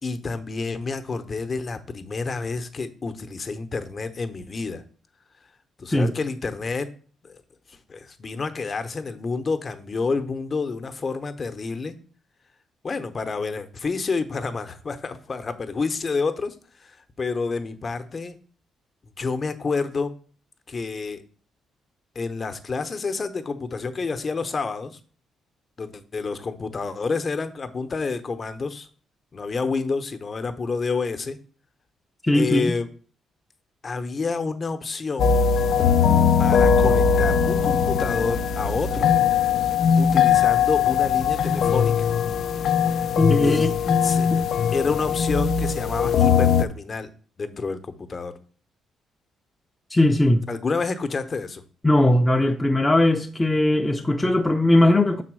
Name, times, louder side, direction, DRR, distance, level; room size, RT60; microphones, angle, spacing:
voice 1, 0.0-4.8 5.8-6.9 7.2-7.3 7.7-11.9 12.8-18.4 19.2-20.1 20.7-21.2 22.1-25.0 25.8-28.9 29.3-31.4 32.3-32.9 33.8-35.4 36.4-39.1 40.0-42.1 43.4-43.7 44.0-44.3 44.7-47.1 47.4-48.3 50.5-51.6, left 4 dB, 35° left, 0.9 m, -29 dB
voice 2, 32.2-32.7 43.2-44.0 44.3-44.4 49.9-50.5 51.8-55.2, left 1 dB, 15° left, 0.6 m, -19 dB
sound 1, 35.2-46.7, left 7 dB, 65° left, 0.4 m, -20 dB
6.0 x 4.1 x 6.2 m
cardioid pair, 90°, 0 cm